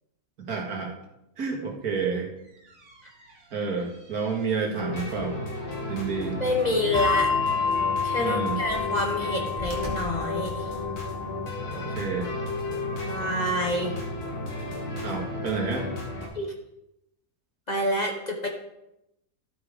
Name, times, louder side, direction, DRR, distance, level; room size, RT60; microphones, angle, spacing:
voice 1, 0.4-0.9 1.4-2.3 3.5-5.4 5.9-6.4 8.2-8.6 11.7-12.3 15.0-15.9, right 5 dB, 80° right, 1 dB, 2.0 m, -29 dB
sound 1, 2.3-11.1, equal, 65° right, 1.8 m, -46 dB
sound 2, 4.7-16.3, left 2 dB, 85° left, 2.4 m, -33 dB
voice 2, 6.4-7.3 8.0-10.7 13.0-14.0 16.3-16.5 17.7-18.5, left 1 dB, 30° left, 1 dB, 1.1 m, -27 dB
Bell, 6.9-13.8, left 5 dB, 5° left, 1.0 m, -30 dB
12.5 x 5.0 x 4.9 m, 0.85 s
omnidirectional pair, 1.6 m